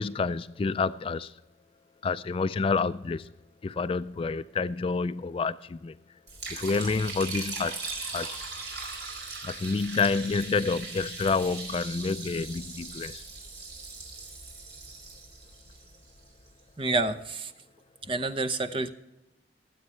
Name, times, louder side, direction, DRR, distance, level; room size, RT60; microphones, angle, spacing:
voice 1, 0.0-1.3 2.0-3.3 3.6-5.9 6.5-7.8 8.1-8.4 9.4-13.2, left 4 dB, 30° left, 0.3 m, -28 dB
Liquid, 6.3-16.5, right 3 dB, 75° right, 4.7 m, -39 dB
voice 2, 16.8-17.5 18.1-18.9, right 3 dB, 30° right, 0.8 m, -28 dB
23.5 x 8.2 x 3.2 m
head